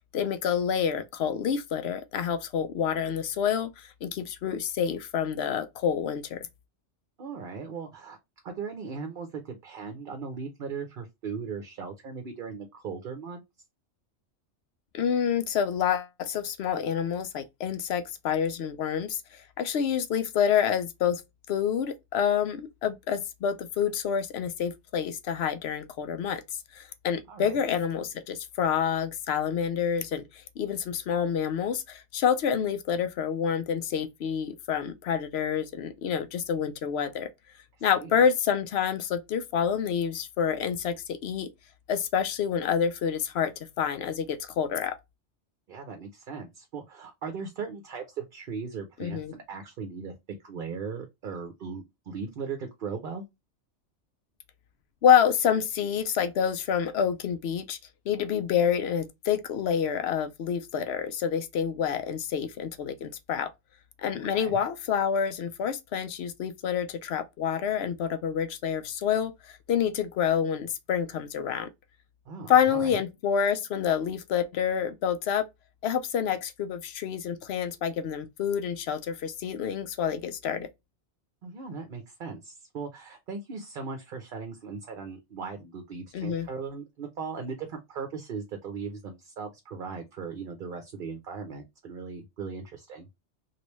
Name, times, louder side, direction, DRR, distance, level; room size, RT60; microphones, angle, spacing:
voice 1, 0.1-6.5 14.9-21.2 21.5-26.4 26.7-37.3 37.8-41.5 41.9-45.0 49.0-49.3 55.0-57.8 58.1-63.5 64.0-71.7 72.5-75.5 75.8-80.7 86.1-86.5, left 8 dB, 65° left, 0.8 m, -28 dB
voice 2, 7.2-8.2 8.4-13.4 27.3-27.6 37.8-38.2 45.7-50.1 50.4-53.2 64.3-64.6 72.3-73.0 81.4-93.1, right 5 dB, 55° right, 0.8 m, -38 dB
3.2 x 2.6 x 3.0 m
omnidirectional pair, 1.2 m